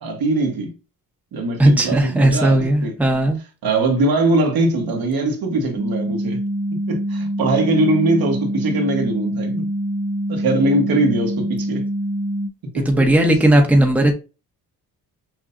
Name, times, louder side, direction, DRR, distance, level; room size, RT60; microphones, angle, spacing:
voice 1, 0.0-0.7 1.3-2.9 3.6-6.4 6.9-9.7 10.3-11.9 12.7-13.0, right 2 dB, 70° right, 1.4 m, -21 dB
voice 2, 1.6-3.4 12.7-14.1, right 1 dB, 5° right, 0.9 m, -16 dB
sound 1, 5.7-12.5, right 1 dB, 35° right, 0.8 m, -25 dB
6.2 x 2.6 x 2.6 m
cardioid pair, 95°, 38 cm